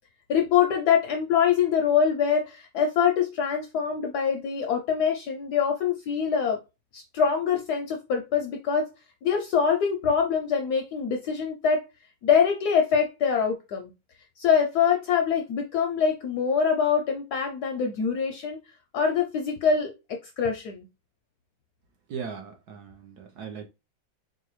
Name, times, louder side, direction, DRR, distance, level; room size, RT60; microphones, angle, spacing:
voice 1, 0.3-6.6 6.9-8.9 9.2-11.8 12.2-13.9 14.4-18.6 18.9-20.9, left 7 dB, 75° left, 0.9 m, -24 dB
voice 2, 22.1-23.7, right 6 dB, 65° right, 1.1 m, -38 dB
4.7 x 2.2 x 3.0 m
omnidirectional pair, 2.2 m